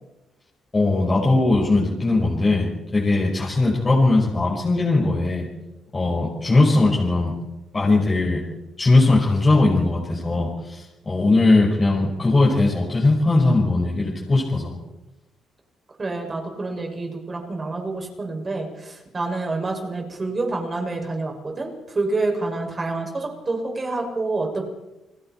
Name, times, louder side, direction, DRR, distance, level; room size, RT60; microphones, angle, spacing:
voice 1, 0.7-5.5 5.9-7.3 7.7-8.4 8.8-14.8, left 2 dB, 25° left, -3 dB, 5.4 m, -19 dB
voice 2, 16.0-24.6, right 3 dB, 30° right, 1 dB, 6.8 m, -27 dB
29.5 x 20.0 x 4.6 m, 1.0 s
cardioid pair, 90°, 0 cm